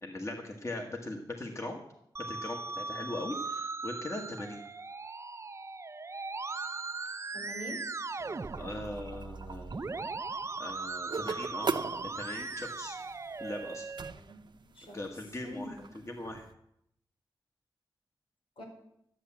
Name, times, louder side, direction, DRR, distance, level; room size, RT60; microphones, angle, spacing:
voice 1, 0.0-1.8 2.3-4.6 8.6-9.9 10.6-11.7 12.0-13.0 13.4-13.9 14.9-16.5, left 1 dB, 35° left, 2 dB, 1.6 m, -40 dB
Musical instrument, 2.2-14.1, right 3 dB, 30° right, 0.5 m, -39 dB
voice 2, 7.3-7.8 14.1-15.0 15.4-15.8 18.6-18.7, left 1 dB, 85° left, -1 dB, 4.9 m, -44 dB
sound 1, 8.2-16.5, right 5 dB, 60° right, 0.8 m, -41 dB
13.0 x 8.8 x 7.4 m, 0.77 s
wide cardioid pair, 95°, 9 cm